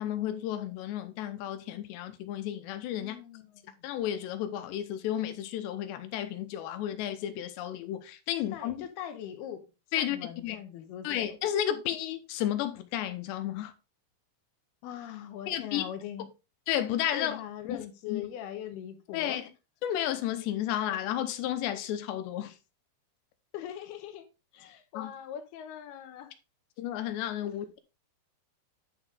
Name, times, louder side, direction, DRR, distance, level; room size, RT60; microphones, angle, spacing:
voice 1, 0.0-3.2 3.8-8.8 9.9-10.2 10.4-10.6 11.0-13.7 15.5-15.8 16.7-17.4 17.7-17.8 18.1-18.2 19.1-19.4 19.8-22.5 24.9-25.1 26.8-27.8, left 11 dB, 90° left, 3.1 m, -32 dB
voice 2, 3.0-3.7 8.4-9.6 10.0-11.2 11.7-11.8 14.8-16.3 17.1-19.4 23.5-24.3 24.5-26.3, left 10 dB, 75° left, 2.7 m, -41 dB
10.0 x 5.9 x 3.7 m
omnidirectional pair, 4.9 m